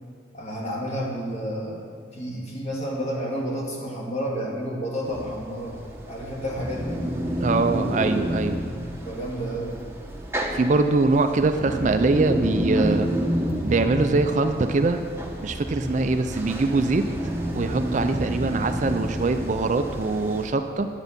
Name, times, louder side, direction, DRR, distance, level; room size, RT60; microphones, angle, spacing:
voice 1, 0.3-1.8 2.1-5.8 6.1-7.0 9.0-9.8, equal, 35° left, -3 dB, 2.0 m, -30 dB
sound 1, 5.0-20.5, equal, 15° right, 1.0 m, -29 dB
voice 2, 7.4-8.6 10.5-13.1 13.6-15.0 15.4-17.1 17.5-20.9, right 3 dB, 40° right, 8 dB, 0.4 m, -23 dB
10.0 x 8.2 x 5.3 m, 2.3 s
head